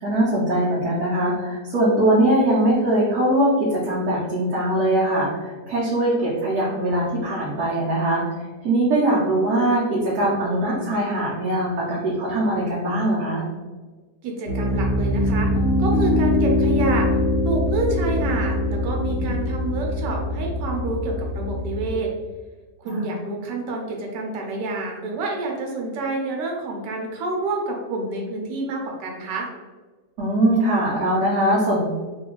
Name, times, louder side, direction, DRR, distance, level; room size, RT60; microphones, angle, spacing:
voice 1, 0.0-13.4 19.2-19.3 22.8-23.1 30.2-31.8, right 1 dB, 65° right, -7 dB, 1.2 m, -21 dB
voice 2, 14.2-15.5 15.8-17.1 17.4-22.1 22.8-29.5, right 2 dB, 80° right, 0 dB, 1.3 m, -28 dB
Piano, 14.5-22.0, left 1 dB, 70° left, 0.9 m, -23 dB
3.2 x 2.3 x 3.0 m, 1.3 s
omnidirectional pair, 1.9 m